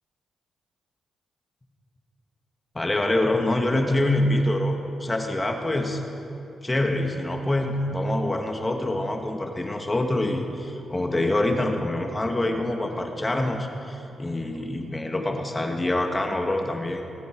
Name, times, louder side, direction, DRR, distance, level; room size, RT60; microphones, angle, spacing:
voice 1, 2.7-6.0 6.6-17.0, left 1 dB, 25° left, 3 dB, 1.8 m, -25 dB
26.5 x 9.4 x 4.7 m, 2.7 s
cardioid pair, 65°, 0 cm